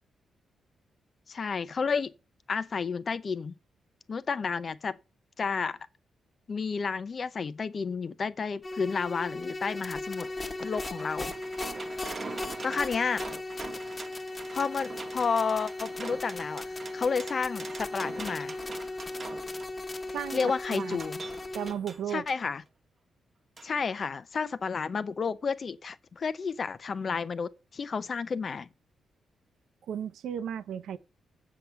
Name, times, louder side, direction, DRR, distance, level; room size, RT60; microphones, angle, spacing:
voice 1, 1.3-2.1 2.5-3.5 4.1-5.0 5.4-5.8 6.5-10.3 10.6-11.3 11.6-11.9 12.6-13.2 14.5-18.5 20.3-21.2 22.1-22.6 23.6-28.7, left 5 dB, 40° left, 0.7 m, -31 dB
sound 1, 8.6-21.7, left 2 dB, 25° left, 1.2 m, -37 dB
sound 2, 9.9-22.4 23.6-23.7 24.0-24.1, right 4 dB, 35° right, 1.1 m, -44 dB
voice 2, 21.5-22.2 29.9-31.0, right 9 dB, 85° right, 0.8 m, -34 dB
7.6 x 6.9 x 5.7 m
cardioid pair, 115°, 0 cm